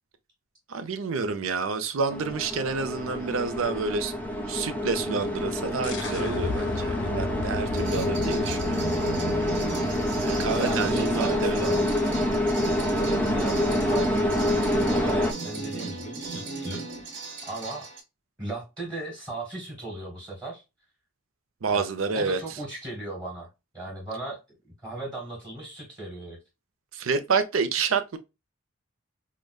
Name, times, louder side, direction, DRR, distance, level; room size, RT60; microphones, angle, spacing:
voice 1, 0.7-4.1 4.5-8.9 10.2-11.6 21.6-22.6 26.9-28.2, right 4 dB, 85° right, 0.6 m, -29 dB
sound 1, 2.1-15.3, left 1 dB, 5° left, 0.4 m, -27 dB
sound 2, 5.8-11.3, left 3 dB, 60° left, 0.6 m, -35 dB
sound 3, 7.7-18.0, right 3 dB, 55° right, 1.2 m, -36 dB
voice 2, 10.5-11.8 13.0-16.8 17.5-17.9 18.4-20.6 21.7-23.5 23.7-24.4 24.8-26.4, right 2 dB, 20° right, 1.3 m, -36 dB
4.9 x 2.1 x 2.2 m
head